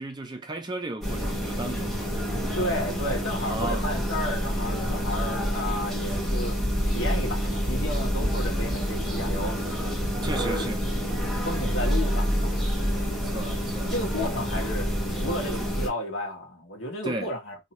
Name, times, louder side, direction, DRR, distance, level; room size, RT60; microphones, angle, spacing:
voice 1, 0.0-2.1 2.5-2.7 3.4-3.9 10.2-10.8 13.1-14.3 15.5-15.6 17.0-17.3, right 2 dB, 20° right, 0.4 m, -35 dB
sound 1, 1.0-15.9, equal, ahead, 1.1 m, -27 dB
voice 2, 2.5-6.6 6.8-9.9 10.2-10.7 11.4-12.6 13.3-13.6 13.9-17.6, left 1 dB, 60° left, 1.3 m, -33 dB
2.7 x 2.6 x 4.1 m
head